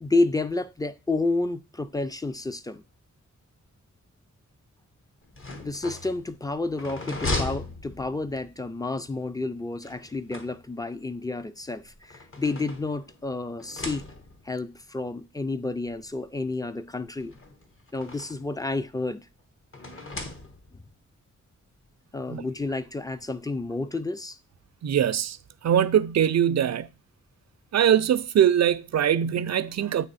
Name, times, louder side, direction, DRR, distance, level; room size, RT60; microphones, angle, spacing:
voice 1, 0.0-2.8 5.6-14.0 14.4-17.3 17.9-19.3 22.1-24.4, left 2 dB, 10° left, 0.4 m, -30 dB
sound 1, 5.2-8.5 9.8-11.0 11.8-13.2 13.6-14.5 15.5-15.6 15.9-16.0 17.2-18.5 19.7-20.9, left 2 dB, 45° left, 1.1 m, -36 dB
voice 2, 24.8-25.4 25.6-26.9 27.7-30.1, right 9 dB, 60° right, 0.5 m, -22 dB
8.8 x 3.1 x 4.1 m
wide cardioid pair, 80°, 30 cm